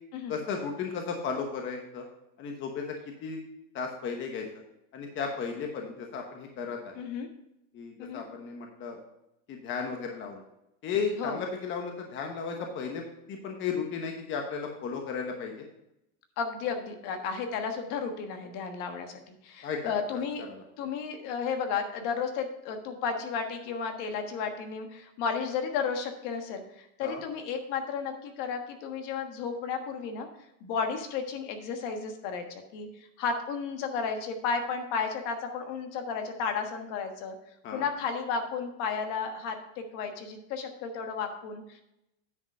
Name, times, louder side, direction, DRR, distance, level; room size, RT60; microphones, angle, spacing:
voice 1, 0.3-2.0 2.4-3.0 3.2-3.4 3.7-4.5 4.9-6.9 7.7-9.0 9.5-10.4 10.8-15.6 19.6-19.8 20.5-20.6 27.0-27.2 37.6-37.9, left 5 dB, 30° left, 2 dB, 1.1 m, -34 dB
voice 2, 7.0-7.3 8.0-8.2 11.2-11.4 16.4-20.4 20.8-30.3 30.6-32.9 33.2-37.3 37.7-41.8, left 5 dB, 50° left, 6 dB, 1.4 m, -33 dB
9.6 x 5.2 x 5.3 m, 0.85 s
supercardioid pair, 150°, 40 cm